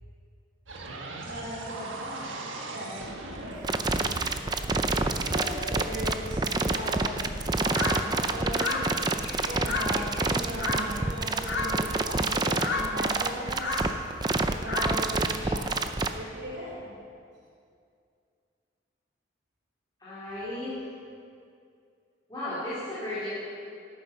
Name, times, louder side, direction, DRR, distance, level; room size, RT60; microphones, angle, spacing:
sound 1, 0.7-7.0, right 2 dB, 80° right, 1.6 m, -40 dB
voice 1, 1.2-2.3 2.7-4.6 5.2-8.8 9.4-13.9 14.6-15.8 16.1-16.9, equal, 60° right, -6 dB, 3.5 m, -38 dB
sound 2, 3.6-16.1, right 3 dB, 20° right, 0.5 m, -27 dB
sound 3, 7.7-11.2 11.4-12.0 12.4-15.5, left 2 dB, 60° left, 1.4 m, -33 dB
voice 2, 20.0-20.8 22.3-23.3, left 1 dB, 20° left, -13 dB, 3.9 m, -34 dB
14.0 x 9.3 x 5.9 m, 2.4 s
head